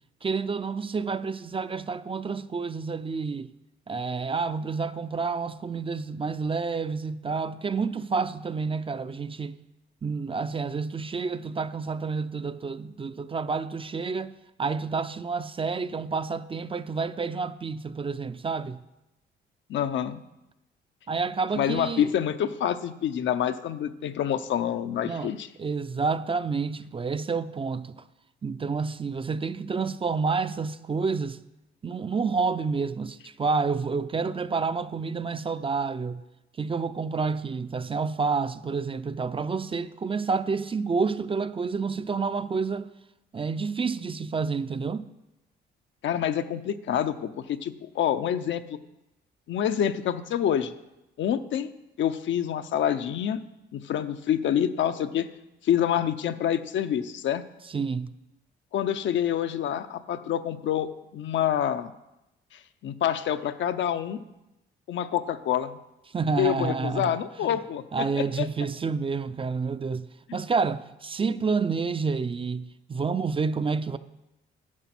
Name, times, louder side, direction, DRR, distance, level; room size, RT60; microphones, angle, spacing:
voice 1, 0.2-3.5 3.9-9.6 10.0-14.3 14.6-18.8 21.1-22.1 25.1-25.3 25.6-28.0 28.4-31.4 31.8-36.2 36.6-42.9 43.3-45.0 57.7-58.1 66.1-67.2 67.5-67.6 67.9-74.0, right 4 dB, 25° right, 0.5 m, -29 dB
voice 2, 19.7-20.2 21.5-25.5 46.0-48.8 49.5-50.7 51.2-51.7 52.0-53.4 53.7-55.3 55.6-57.4 58.7-61.9 62.5-64.2 64.9-65.8 66.4-68.5 70.3-70.4, left 10 dB, 70° left, 0.7 m, -27 dB
11.0 x 8.1 x 6.0 m
cardioid pair, 90°, 20 cm